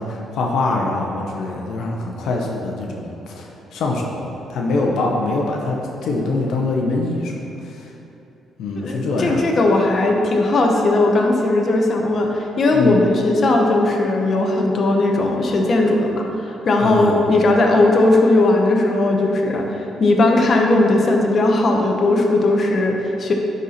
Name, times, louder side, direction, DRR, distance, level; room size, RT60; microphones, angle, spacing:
voice 1, 0.0-7.9 8.6-9.5 12.7-13.0 16.8-17.2, left 2 dB, 75° left, 0 dB, 0.8 m, -24 dB
voice 2, 8.8-23.3, left 2 dB, 45° left, 1 dB, 0.9 m, -17 dB
10.0 x 4.2 x 4.3 m, 2.8 s
cardioid pair, 90°, 0 cm